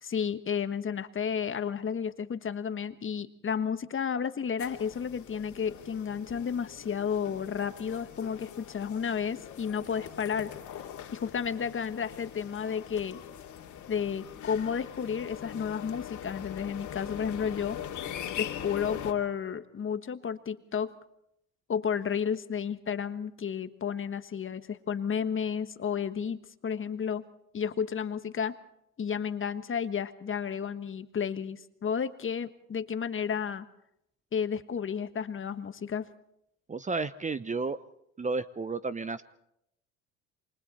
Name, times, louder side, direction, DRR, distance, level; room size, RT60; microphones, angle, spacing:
voice 1, 0.0-10.5 11.1-13.2 13.9-17.8 18.4-20.9 21.7-27.2 27.5-28.6 29.0-33.7 34.3-36.1, left 7 dB, 35° left, 11 dB, 1.4 m, -32 dB
sound 1, 4.6-19.1, left 10 dB, 55° left, 2.5 m, -42 dB
voice 2, 36.7-37.8 38.2-39.2, right 3 dB, 20° right, 14 dB, 0.8 m, -32 dB
28.0 x 25.0 x 4.3 m, 0.78 s
hypercardioid pair, 75°, 37 cm